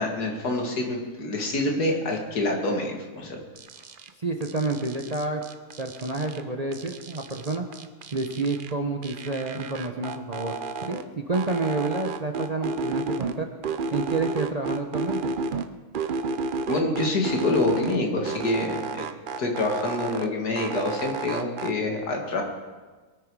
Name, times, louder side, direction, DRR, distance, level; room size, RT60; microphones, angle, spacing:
voice 1, 0.0-3.4 16.7-19.0 19.4-22.4, left 2 dB, 75° left, 1 dB, 2.5 m, -26 dB
sound 1, 3.6-4.1 4.4-6.4 6.7-8.7 9.0-11.0 11.3-13.3 13.6-15.7 15.9-18.0 18.2-20.3 20.6-21.7, right 4 dB, 55° right, 0.5 m, -32 dB
voice 2, 4.2-5.4 5.8-7.6 8.1-10.5 10.9-13.5 13.9-15.3, right 3 dB, 30° right, 3 dB, 0.9 m, -29 dB
23.0 x 8.9 x 4.8 m, 1.3 s
omnidirectional pair, 1.7 m